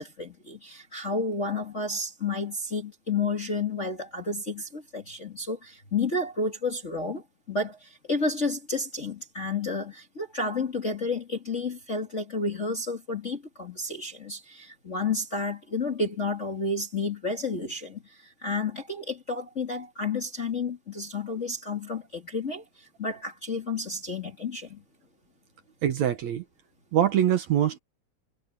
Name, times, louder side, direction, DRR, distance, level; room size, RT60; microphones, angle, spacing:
voice 1, 0.0-24.8, left 3 dB, 25° left, 1.8 m, -31 dB
voice 2, 25.8-26.4 26.9-27.8, right 10 dB, 65° right, 2.2 m, -23 dB
omnidirectional pair, 3.9 m